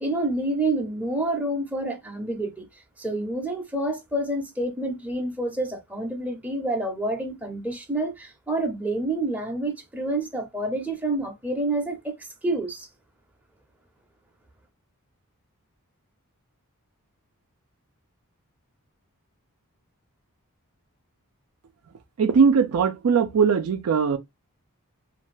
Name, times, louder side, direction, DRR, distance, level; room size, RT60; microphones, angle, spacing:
voice 1, 0.0-2.7 3.0-12.9, right 2 dB, 5° right, 0.6 m, -28 dB
voice 2, 22.2-24.2, right 6 dB, 70° right, 0.4 m, -20 dB
2.5 x 2.2 x 3.1 m
head